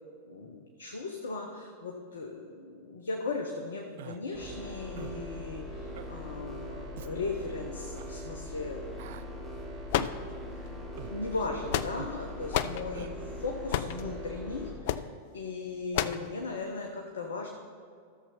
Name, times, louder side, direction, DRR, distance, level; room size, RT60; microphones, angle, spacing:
voice 1, 0.3-8.9 10.6-10.7 11.1-15.0 15.3-17.5, left 3 dB, 65° left, 2 dB, 0.8 m, -37 dB
Human voice, 4.0-4.2 5.0-5.2 5.9-6.1 6.9-7.1 7.9-8.1 9.0-9.3 10.0-10.2 11.0-11.2 12.0-12.2 12.9-13.1, right 11 dB, 55° right, 0.3 m, -45 dB
sound 1, 4.3-14.7, left 1 dB, 15° right, 2.8 m, -41 dB
sound 2, 9.9-10.7 11.4-12.2 12.5-12.8 13.7-14.0 14.8-15.1 15.9-16.3, left 11 dB, 50° left, 0.3 m, -30 dB
13.5 x 7.0 x 4.2 m, 2.2 s
figure-of-eight pair, 90°, 0 cm